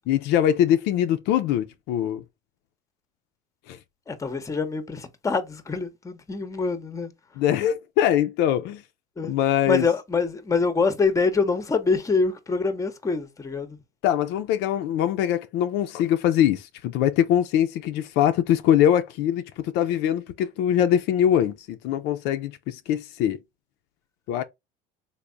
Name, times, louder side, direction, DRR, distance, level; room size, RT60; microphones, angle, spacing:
voice 1, 0.1-2.2 3.7-3.8 7.4-8.8 9.2-9.9 14.0-23.4 24.3-24.4, left 10 dB, 70° left, 0.4 m, -22 dB
voice 2, 4.1-7.1 9.2-9.3 9.7-13.8, left 4 dB, 15° left, 0.7 m, -25 dB
3.3 x 2.0 x 3.7 m
supercardioid pair, 95°, 18 cm